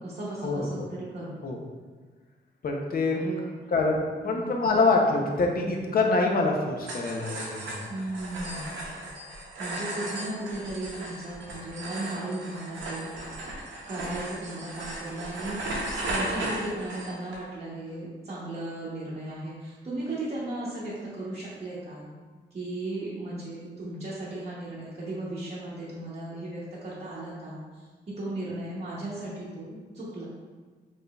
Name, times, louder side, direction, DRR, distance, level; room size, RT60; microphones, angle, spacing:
voice 1, 0.0-1.4 3.1-3.7 4.2-4.5 7.9-8.8 9.6-13.1 13.9-15.6 16.1-22.1 22.5-30.2, right 1 dB, 35° right, -8 dB, 0.8 m, -36 dB
voice 2, 2.6-3.2 3.7-7.9, left 3 dB, 50° left, 1 dB, 0.6 m, -25 dB
sound 1, 6.8-17.4, right 1 dB, 90° right, 0.7 m, -36 dB
4.8 x 2.6 x 2.3 m, 1.4 s
cardioid pair, 85°, 19 cm